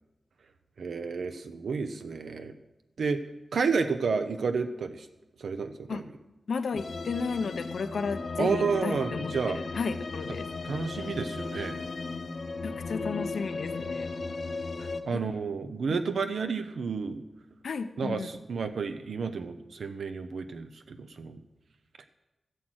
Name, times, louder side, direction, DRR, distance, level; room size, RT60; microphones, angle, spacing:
voice 1, 0.8-2.5 3.0-3.2 3.5-5.1 5.4-6.1 8.4-9.6 10.6-11.8 14.2-17.2 18.0-21.4 22.0-22.1, right 5 dB, 75° right, 8 dB, 0.7 m, -31 dB
voice 2, 6.5-10.5 12.6-14.1 15.1-15.2 17.6-18.3, left 5 dB, 70° left, 10 dB, 0.7 m, -33 dB
sound 1, 6.8-15.0, left 3 dB, 45° left, 0.9 m, -36 dB
15.5 x 7.6 x 6.3 m, 1.0 s
wide cardioid pair, 180°, 0 cm